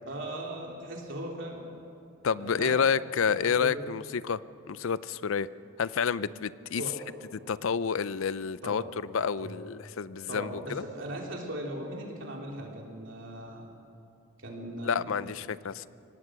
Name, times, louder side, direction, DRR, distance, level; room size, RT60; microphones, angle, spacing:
voice 1, 0.0-1.6 2.4-2.9 3.4-3.8 6.2-6.3 6.8-6.9 8.6-8.9 9.4-9.5 10.3-13.7 14.4-15.3, right 1 dB, 65° right, -1 dB, 3.5 m, -38 dB
voice 2, 2.2-4.4 4.7-5.5 5.8-6.8 7.5-10.8 14.8-15.9, left 6 dB, 75° left, 17 dB, 0.5 m, -29 dB
24.5 x 18.0 x 6.4 m, 2.7 s
head